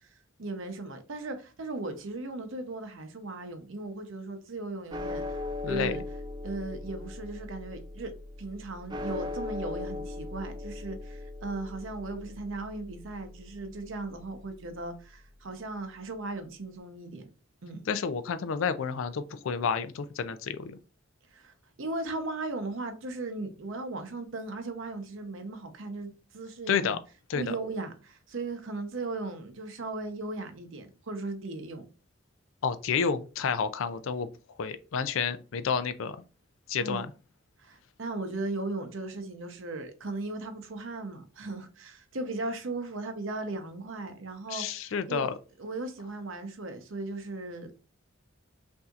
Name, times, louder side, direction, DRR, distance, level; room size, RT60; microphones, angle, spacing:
voice 1, 0.4-5.2 5.7-6.0 6.4-8.1 8.4-17.3 17.6-17.8 21.3-21.5 21.8-27.0 27.3-31.9 36.8-37.1 37.6-45.3 45.6-47.8, right 2 dB, 65° right, 0.8 m, -37 dB
sound 1, 4.9-15.3, left 2 dB, 20° right, 0.4 m, -39 dB
voice 2, 17.9-20.8 26.7-27.0 27.3-27.6 32.6-34.3 34.6-36.2 36.7-37.1 44.5-45.3, left 6 dB, 70° left, 0.4 m, -30 dB
5.6 x 2.7 x 2.4 m
head